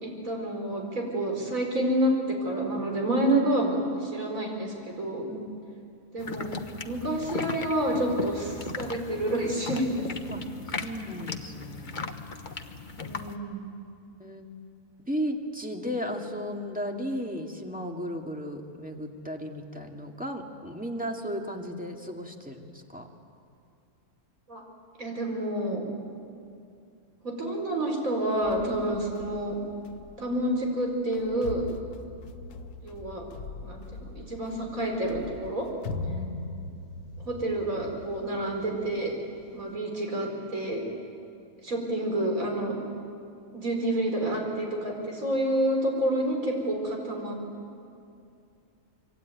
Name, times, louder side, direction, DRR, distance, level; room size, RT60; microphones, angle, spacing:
voice 1, 0.0-5.3 6.1-6.6 6.8-10.4 13.0-13.6 24.5-24.6 25.0-25.8 27.2-29.6 30.2-31.6 32.8-33.3 33.6-35.7 37.2-39.1 39.5-40.8 41.6-42.7 43.5-47.4, right 1 dB, 60° right, 1 dB, 5.2 m, -29 dB
sound 1, 6.2-13.4, left 4 dB, 35° left, 1.2 m, -37 dB
voice 2, 10.8-12.3 14.2-14.5 15.1-23.1 36.0-36.4, equal, 5° right, 2 dB, 2.1 m, -35 dB
sound 2, 28.4-39.7, left 3 dB, 80° left, 1.5 m, -41 dB
25.5 x 24.0 x 9.4 m, 2.5 s
omnidirectional pair, 1.6 m